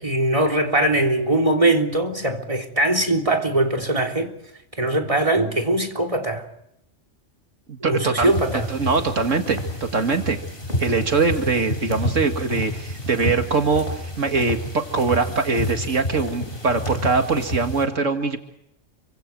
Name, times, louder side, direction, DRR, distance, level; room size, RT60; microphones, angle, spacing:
voice 1, 0.0-4.3 4.8-6.4 7.8-8.7, right 1 dB, 25° right, 3.6 m, -21 dB
voice 2, 7.7-8.3 8.7-10.4 10.8-13.9 14.2-18.4, right 4 dB, 85° right, 2.5 m, -22 dB
sound 1, 8.2-17.8, left 1 dB, 45° left, 6.1 m, -30 dB
29.5 x 25.5 x 4.7 m
omnidirectional pair, 1.3 m